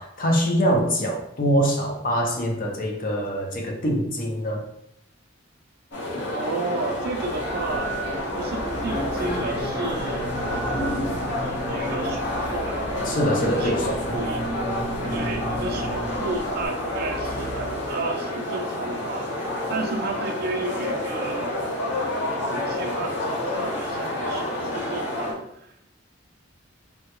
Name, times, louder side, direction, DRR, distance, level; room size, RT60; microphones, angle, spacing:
voice 1, 0.0-4.6 13.0-14.2, equal, 45° left, 1 dB, 0.6 m, -24 dB
sound 1, 5.9-25.3, left 1 dB, 60° left, 1.1 m, -29 dB
voice 2, 6.3-7.9 8.4-10.3 10.6-12.8 13.4-14.4 15.1-21.6 22.0-25.9, right 3 dB, 50° right, 4 dB, 0.4 m, -33 dB
sound 2, 6.8-18.5, right 1 dB, 90° left, 0.7 m, -39 dB
sound 3, 7.5-16.7, right 1 dB, 25° left, 1.1 m, -36 dB
3.5 x 2.2 x 2.9 m, 0.79 s
head